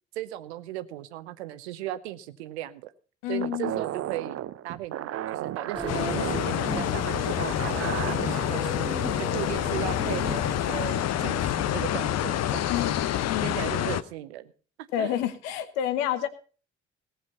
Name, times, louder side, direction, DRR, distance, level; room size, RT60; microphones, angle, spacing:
voice 1, 0.1-2.9 3.3-4.4 4.6-7.9 8.2-12.7 13.4-14.5 15.0-15.1, right 14 dB, 75° right, 14 dB, 0.8 m, -37 dB
voice 2, 3.2-3.8 12.7-13.6 14.9-16.3, left 11 dB, 70° left, 11 dB, 1.2 m, -29 dB
sound 1, 3.4-8.6, right 12 dB, 45° right, 0.6 m, -34 dB
sound 2, 5.7-11.9, right 3 dB, 15° right, 2.1 m, -38 dB
sound 3, 5.9-14.0, left 11 dB, 50° left, 0.8 m, -27 dB
17.5 x 7.8 x 5.4 m, 0.39 s
figure-of-eight pair, 40°, 33 cm